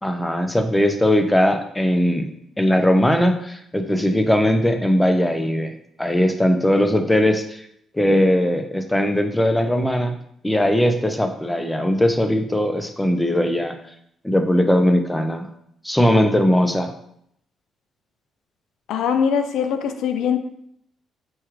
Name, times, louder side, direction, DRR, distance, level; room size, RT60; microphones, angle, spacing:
voice 1, 0.0-2.2 2.6-5.7 6.0-7.6 7.9-10.1 10.4-13.7 14.2-15.5 15.8-16.9, left 1 dB, 10° left, 6 dB, 0.5 m, -19 dB
voice 2, 18.9-20.4, left 7 dB, 80° left, 8 dB, 0.3 m, -21 dB
4.5 x 2.3 x 3.1 m, 0.71 s
cardioid pair, 90°, 0 cm